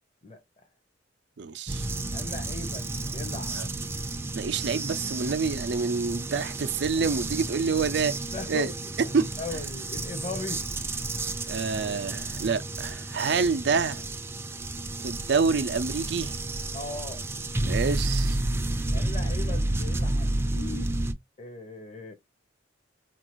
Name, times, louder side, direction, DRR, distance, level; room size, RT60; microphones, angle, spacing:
voice 1, 1.4-1.9 3.5-3.7 4.3-8.1 8.5-8.7 9.1-9.3 11.5-14.0 15.0-16.6 17.6-18.4, right 5 dB, 65° right, 0.4 m, -27 dB
sound 1, 1.7-21.1, right 2 dB, 15° right, 0.5 m, -31 dB
voice 2, 2.1-3.6 8.3-8.7 9.0-10.6 16.7-17.2 18.9-21.0 21.4-22.1, left 3 dB, 35° left, 0.9 m, -38 dB
4.4 x 2.4 x 3.0 m
head